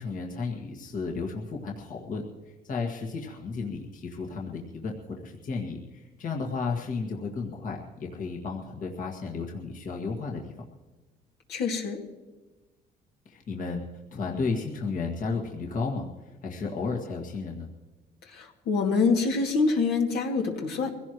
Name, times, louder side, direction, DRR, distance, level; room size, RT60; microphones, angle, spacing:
voice 1, 0.0-10.5 13.3-13.8 14.1-17.7, left 4 dB, 50° left, 0 dB, 1.9 m, -33 dB
voice 2, 11.5-12.0 18.3-20.9, left 4 dB, 75° left, 0 dB, 2.4 m, -25 dB
23.5 x 16.5 x 3.1 m, 1.2 s
cardioid pair, 110°, 17 cm